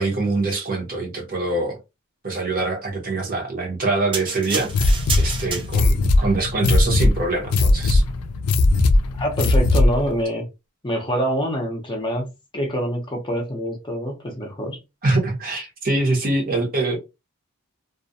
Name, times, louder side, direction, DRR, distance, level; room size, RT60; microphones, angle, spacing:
voice 1, 0.0-1.8 2.2-8.0 15.0-17.0, right 2 dB, 40° right, 0.8 m, -24 dB
sound 1, 4.1-6.1 6.7-6.9, right 4 dB, 25° right, 0.4 m, -30 dB
sound 2, 4.7-10.1, left 2 dB, 80° left, 0.4 m, -19 dB
voice 2, 9.2-10.4 10.8-14.8, equal, 20° left, 0.6 m, -26 dB
2.4 x 2.1 x 2.6 m
head